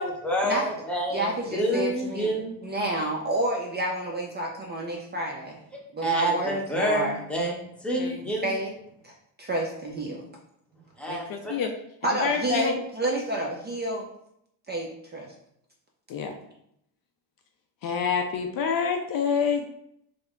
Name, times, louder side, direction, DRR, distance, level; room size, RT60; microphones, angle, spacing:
voice 1, 0.0-2.6 6.0-8.5 11.0-11.5, right 1 dB, ahead, -3 dB, 0.9 m, -28 dB
voice 2, 1.1-2.3 2.6-5.6 5.9-7.2 8.4-8.7 9.0-9.1 9.4-10.3 12.0-14.1 14.7-15.3, right 1 dB, 25° right, 0 dB, 0.5 m, -29 dB
voice 3, 11.1-11.7 12.2-12.7 16.1-16.3 17.8-19.7, left 6 dB, 50° left, 4 dB, 0.5 m, -27 dB
3.3 x 2.1 x 3.6 m, 0.75 s
cardioid pair, 100°, 45 cm